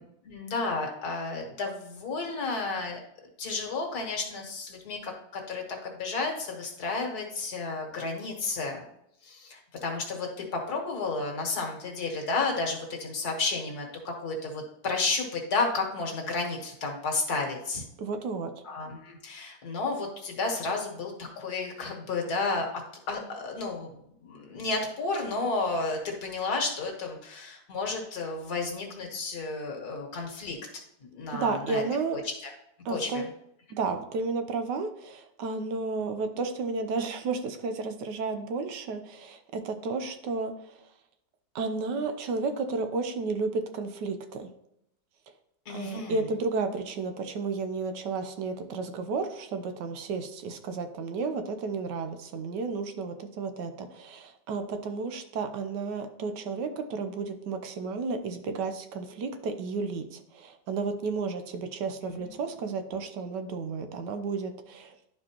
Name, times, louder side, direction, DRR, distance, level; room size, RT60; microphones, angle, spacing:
voice 1, 0.2-3.0 3.4-8.9 9.2-17.8 18.6-22.7 23.1-23.9 24.2-31.8 32.1-32.5 32.9-33.2 45.7-46.2 62.0-62.4, left 3 dB, 65° left, 1 dB, 1.8 m, -32 dB
voice 2, 18.0-18.5 31.3-32.2 32.8-33.2 33.7-40.9 41.5-44.5 45.7-64.9, right 4 dB, 80° right, 8 dB, 1.4 m, -32 dB
11.0 x 4.4 x 2.9 m, 0.78 s
omnidirectional pair, 1.8 m